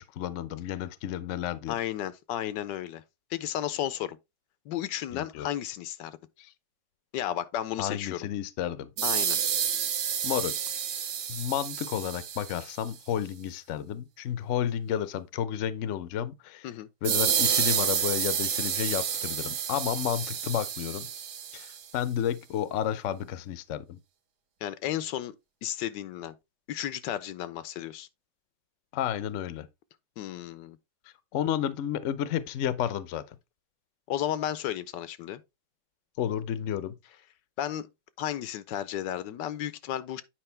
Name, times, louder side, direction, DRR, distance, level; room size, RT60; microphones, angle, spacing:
voice 1, 0.0-1.8 5.1-5.5 6.4-6.5 7.8-8.9 10.2-10.6 11.3-16.7 17.0-21.1 21.5-21.7 21.9-24.0 28.9-29.7 31.3-33.2 36.2-36.9, left 10 dB, 60° left, 0.8 m, -31 dB
voice 2, 1.7-3.0 3.3-4.2 4.7-6.2 7.1-8.2 9.0-9.4 16.6-16.9 24.6-25.4 25.6-26.3 26.7-28.1 30.2-30.8 34.1-35.4 37.6-37.9 38.2-40.2, left 11 dB, 85° left, 1.3 m, -33 dB
sound 1, 9.0-12.8 17.0-21.8, right 8 dB, 70° right, 1.5 m, -29 dB
8.9 x 4.9 x 3.3 m
omnidirectional pair, 1.9 m